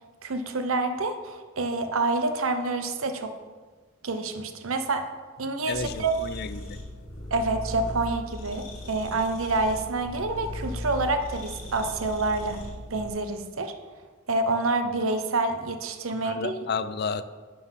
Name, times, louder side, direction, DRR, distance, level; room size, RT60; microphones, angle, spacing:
voice 1, 0.2-3.3 4.0-5.1 5.4-6.2 7.3-12.6 12.9-13.7 14.3-16.5, right 3 dB, 70° right, 8 dB, 0.8 m, -27 dB
sound 1, 5.7-13.1, left 1 dB, 85° left, 2.7 m, -38 dB
voice 2, 5.7-6.6 16.2-17.3, left 5 dB, 45° left, 13 dB, 0.4 m, -31 dB
11.5 x 3.9 x 5.6 m, 1.4 s
head